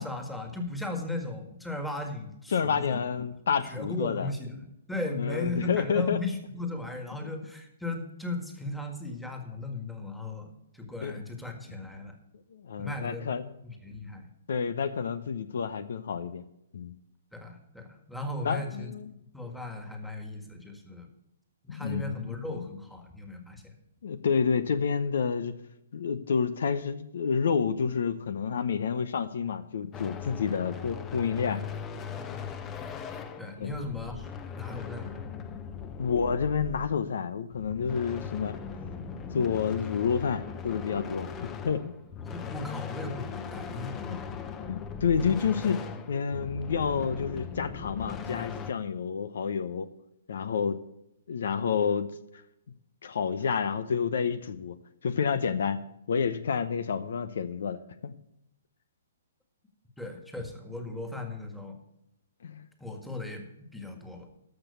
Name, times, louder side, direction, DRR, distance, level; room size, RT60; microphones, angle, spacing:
voice 1, 0.0-3.0 3.6-12.2 12.8-13.3 13.6-14.3 17.3-18.9 19.3-21.1 21.6-23.8 33.4-34.3 34.5-35.2 42.2-44.3 60.0-61.8 62.8-64.3, left 2 dB, ahead, 4 dB, 1.8 m, -37 dB
voice 2, 2.5-4.3 5.1-6.2 7.2-7.3 11.0-11.2 12.5-13.6 14.5-16.4 16.7-16.9 18.4-19.2 21.7-22.7 24.0-25.5 25.9-31.6 33.6-33.7 36.0-38.6 39.3-41.9 44.1-44.2 44.7-45.8 46.1-49.9 50.3-50.8 51.3-52.1 53.0-54.7 55.0-55.8 56.1-58.1 62.4-62.6, left 6 dB, 70° left, 14 dB, 0.8 m, -29 dB
sound 1, 29.9-37.1 37.5-48.7, left 6 dB, 20° left, 0.9 m, -39 dB
13.5 x 6.1 x 6.8 m, 0.83 s
hypercardioid pair, 140°, 0 cm